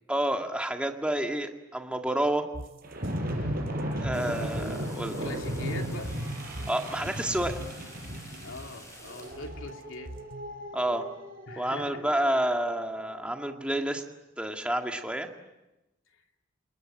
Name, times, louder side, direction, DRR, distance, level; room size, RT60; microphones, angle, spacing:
voice 1, 0.1-2.5 4.0-5.3 6.7-7.6 10.7-11.1 11.6-14.0 14.4-15.3, right 1 dB, 5° right, 4 dB, 1.9 m, -29 dB
sound 1, 2.5-10.6, right 1 dB, 65° right, 2.5 m, -43 dB
sound 2, 2.8-13.4, equal, 45° right, 5.7 m, -36 dB
sound 3, 4.1-9.6, left 1 dB, 15° left, 6.5 m, -50 dB
voice 2, 5.2-6.1 8.4-10.1 11.5-12.1, left 2 dB, 75° left, 3 dB, 2.9 m, -41 dB
28.0 x 21.0 x 8.9 m, 0.97 s
head